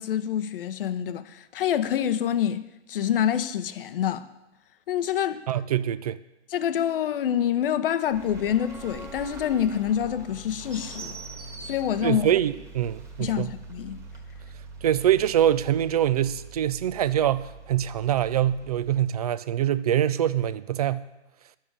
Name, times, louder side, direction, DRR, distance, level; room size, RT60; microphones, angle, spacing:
voice 1, 0.0-4.3 4.9-5.4 6.5-11.2 11.7-12.3 13.2-14.0, left 10 dB, 50° left, 0.8 m, -26 dB
voice 2, 5.5-6.2 12.0-13.5 14.8-21.1, right 11 dB, 35° right, 0.4 m, -24 dB
sound 1, 8.1-19.0, right 3 dB, 10° right, 1.6 m, -43 dB
10.5 x 7.4 x 8.8 m
figure-of-eight pair, 120°, 36 cm